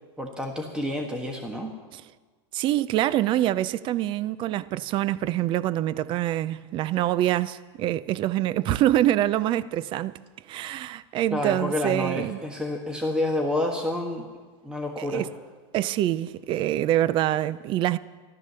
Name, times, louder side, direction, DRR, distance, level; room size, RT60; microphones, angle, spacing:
voice 1, 0.2-1.7 11.3-14.3 14.6-15.3, left 1 dB, 5° right, 1.4 m, -29 dB
voice 2, 2.5-10.1 10.5-12.4 15.0-15.3 15.7-18.0, right 13 dB, 35° right, 0.5 m, -25 dB
14.0 x 13.0 x 6.8 m
supercardioid pair, 130°, 15 cm